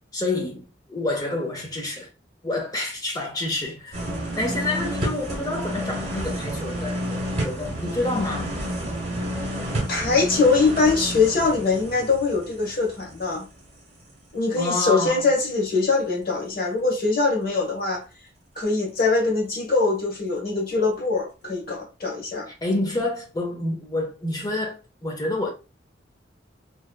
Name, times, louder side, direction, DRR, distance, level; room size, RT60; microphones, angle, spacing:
voice 1, 0.1-0.6 0.9-2.1 2.4-4.0 4.3-8.7 14.6-15.2 22.6-25.5, left 2 dB, 20° left, 0.6 m, -28 dB
sound 1, 3.9-13.7 14.1-14.2, equal, 35° right, 1.1 m, -30 dB
voice 2, 9.9-13.4 14.3-18.1 18.5-22.5, left 3 dB, 55° left, 1.0 m, -22 dB
2.7 x 2.2 x 2.2 m
head